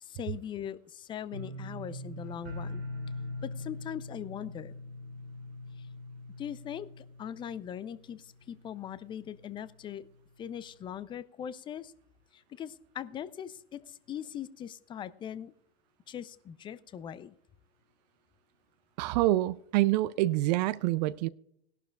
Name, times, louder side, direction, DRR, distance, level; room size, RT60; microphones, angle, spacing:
voice 1, 0.0-2.8 3.4-4.7 5.8-5.9 6.4-10.1 10.4-11.9 12.3-15.5 16.1-17.3, left 9 dB, 15° left, 0.4 m, -40 dB
sound 1, 1.3-8.2 8.5-9.0 9.4-9.5, left 1 dB, 85° right, 2.9 m, -42 dB
voice 2, 19.0-21.3, right 16 dB, 45° right, 0.4 m, -26 dB
18.5 x 11.5 x 2.3 m
hypercardioid pair, 115°, 31 cm